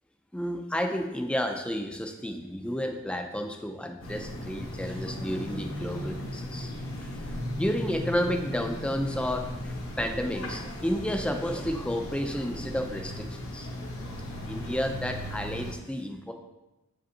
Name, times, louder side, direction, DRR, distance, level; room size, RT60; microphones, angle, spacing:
voice 1, 0.3-6.7 7.0-13.7 14.5-16.3, equal, 5° left, 4 dB, 0.4 m, -31 dB
sound 1, 4.0-15.7, left 1 dB, 65° left, 1.1 m, -36 dB
7.9 x 5.1 x 2.8 m, 1.0 s
head